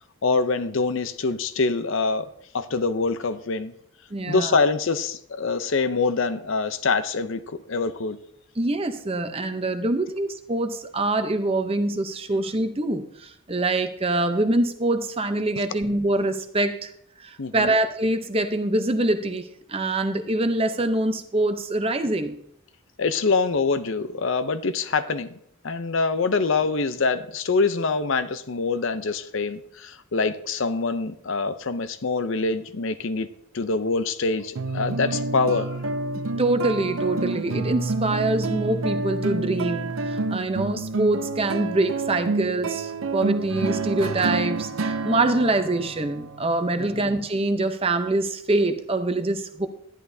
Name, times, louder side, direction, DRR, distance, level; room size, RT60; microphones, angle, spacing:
voice 1, 0.2-2.3 2.5-3.7 4.3-8.2 17.4-17.7 23.0-25.3 25.6-33.3 33.5-35.9 46.8-47.1, left 4 dB, 60° left, 11 dB, 0.6 m, -25 dB
voice 2, 4.1-4.5 8.6-16.9 17.2-22.4 36.4-49.7, right 2 dB, 25° right, 8 dB, 0.7 m, -24 dB
sound 1, 34.6-47.3, right 3 dB, 75° right, 0.6 m, -29 dB
11.5 x 11.0 x 2.7 m, 0.70 s
head